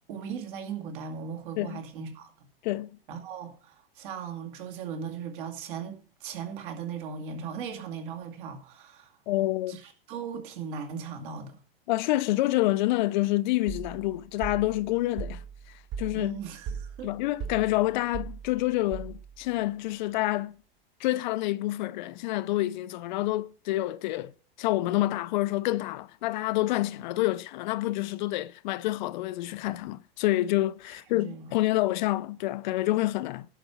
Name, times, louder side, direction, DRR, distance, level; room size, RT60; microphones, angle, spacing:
voice 1, 0.1-2.3 3.1-9.1 9.7-11.6 16.1-17.1 31.1-31.6, right 6 dB, 60° right, 2.3 m, -38 dB
voice 2, 9.3-9.8 11.9-15.4 16.0-16.4 17.0-20.6 21.0-24.3 24.6-33.5, left 17 dB, 50° left, 0.5 m, -28 dB
sound 1, 13.7-19.5, right 7 dB, 45° right, 2.6 m, -39 dB
11.0 x 5.0 x 7.0 m
supercardioid pair, 145°, 30 cm